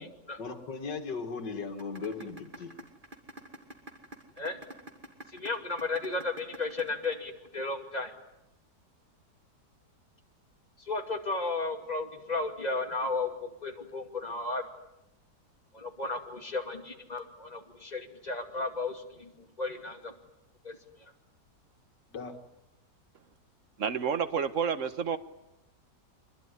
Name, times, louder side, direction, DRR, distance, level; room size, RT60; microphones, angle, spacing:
voice 1, 0.4-2.8 22.1-22.4, left 4 dB, 85° left, 5 dB, 2.6 m, -37 dB
sound 1, 1.8-7.8, right 1 dB, 30° right, 2.6 m, -46 dB
voice 2, 5.3-8.1 10.8-14.6 15.7-19.3 19.6-20.1 20.6-21.1, left 3 dB, 25° left, 5 dB, 2.5 m, -34 dB
voice 3, 23.8-25.2, right 7 dB, 50° right, 11 dB, 1.6 m, -29 dB
25.0 x 22.0 x 9.8 m, 0.93 s
omnidirectional pair, 1.8 m